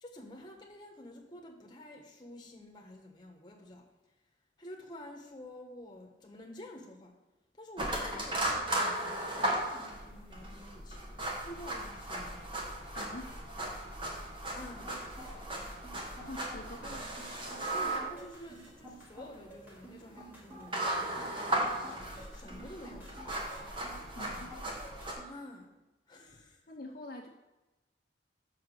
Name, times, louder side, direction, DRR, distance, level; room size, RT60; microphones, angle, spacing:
voice 1, 0.0-4.1 4.6-7.2 7.5-12.6 14.5-15.0 17.7-23.2 25.3-25.7 26.1-26.7, left 1 dB, 25° left, 1 dB, 1.2 m, -50 dB
sound 1, 7.8-25.1, right 1 dB, 30° right, 1.3 m, -36 dB
voice 2, 12.9-13.4 16.2-17.1 24.2-24.5 26.7-27.3, left 2 dB, 55° left, 1 dB, 0.7 m, -45 dB
sound 2, 14.7-25.3, equal, 10° right, 1.9 m, -50 dB
5.7 x 5.6 x 6.7 m, 1.1 s
head